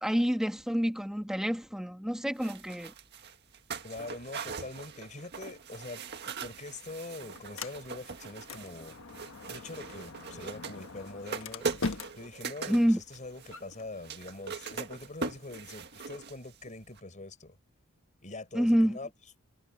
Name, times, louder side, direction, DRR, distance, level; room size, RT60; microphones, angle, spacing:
voice 1, 0.0-2.9 12.7-13.0 18.5-19.0, equal, 5° right, 1.6 m, -27 dB
sound 1, 2.4-16.7 17.0-17.1, right 5 dB, 50° right, 1.8 m, -41 dB
voice 2, 3.8-9.0 9.5-11.7 12.1-17.6 18.2-19.1, left 2 dB, 35° left, 4.8 m, -44 dB
Sliding door, 6.3-16.2, left 3 dB, 65° left, 1.4 m, -44 dB
head